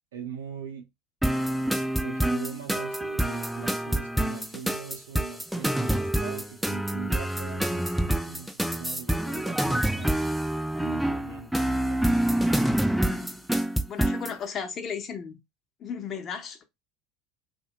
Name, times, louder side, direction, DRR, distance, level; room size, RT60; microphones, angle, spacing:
voice 1, 0.1-0.9 2.0-10.2 10.8-12.2, right 7 dB, 70° right, 0.6 m, -41 dB
sound 1, 1.2-14.4, right 1 dB, 5° right, 0.3 m, -27 dB
voice 2, 13.9-15.4 15.8-16.6, left 7 dB, 40° left, 0.7 m, -35 dB
2.7 x 2.2 x 2.8 m
figure-of-eight pair, 70°, 0 cm